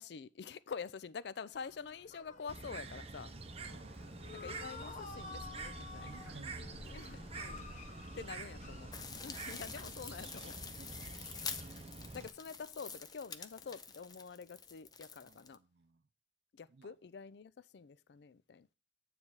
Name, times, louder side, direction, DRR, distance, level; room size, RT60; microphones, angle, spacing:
voice 1, 0.0-3.3 4.3-6.2 6.9-7.7 8.1-8.9 9.2-10.6 12.1-15.6 16.5-18.7, left 5 dB, 65° left, 0.4 m, -47 dB
sound 1, 1.5-10.1 10.3-12.8 13.3-13.9, left 3 dB, 45° left, 0.9 m, -52 dB
Bird, 2.5-12.3, right 3 dB, 35° right, 0.7 m, -47 dB
voice 2, 3.6-4.3 6.0-6.7 8.0-8.1 10.7-11.0 11.5-11.7 12.1-12.3 15.2-16.1 16.7-17.0, right 4 dB, 65° right, 0.5 m, -58 dB
sound 2, 8.9-15.5, left 5 dB, 20° left, 0.6 m, -47 dB
9.7 x 3.4 x 6.2 m
head